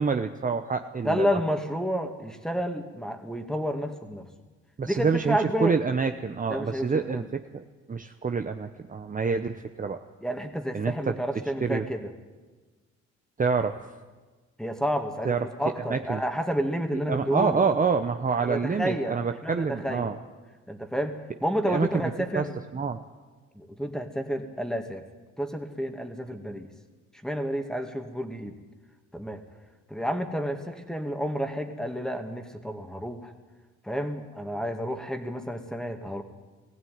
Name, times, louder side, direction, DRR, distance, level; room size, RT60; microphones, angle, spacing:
voice 1, 0.0-1.4 4.8-10.0 10.7-11.1 11.6-11.8 13.4-13.8 15.2-15.5 15.9-16.2 17.1-20.2 21.6-22.5 22.7-23.0, right 5 dB, 25° right, 7 dB, 0.9 m, -27 dB
voice 2, 1.0-4.3 4.8-5.8 6.5-7.3 10.2-12.1 14.6-17.6 18.5-20.1 20.7-22.6 23.5-25.0 25.4-26.7 27.2-28.6 29.1-29.4 29.9-33.3 33.8-36.2, equal, ahead, 5 dB, 2.3 m, -30 dB
19.5 x 16.0 x 9.5 m, 1.3 s
cardioid pair, 90°, 30 cm